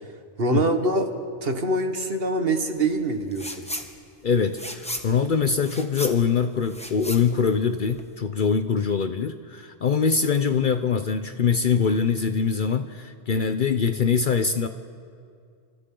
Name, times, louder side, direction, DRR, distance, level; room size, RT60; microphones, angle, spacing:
voice 1, 0.4-1.1 1.4-3.6, right 2 dB, 60° right, 6 dB, 1.7 m, -24 dB
sound 1, 3.3-3.9 4.2-8.1, left 1 dB, 5° left, 1.3 m, -35 dB
voice 2, 4.2-14.7, left 6 dB, 55° left, 9 dB, 0.8 m, -23 dB
29.0 x 25.5 x 3.8 m, 2.3 s
omnidirectional pair, 1.1 m